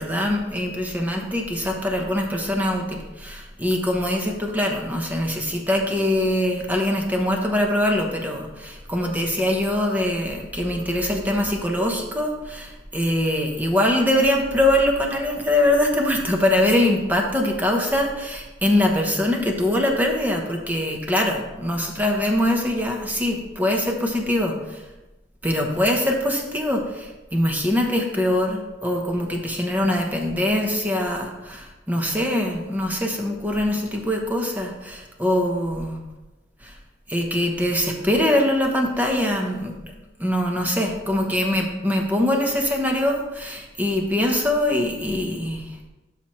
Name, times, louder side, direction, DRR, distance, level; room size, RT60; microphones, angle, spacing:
voice 1, 0.0-24.8 25.4-36.0 36.6-36.8 37.1-39.7 40.2-45.9, left 1 dB, 10° right, 1 dB, 0.9 m, -23 dB
12.0 x 5.8 x 3.1 m, 1.1 s
head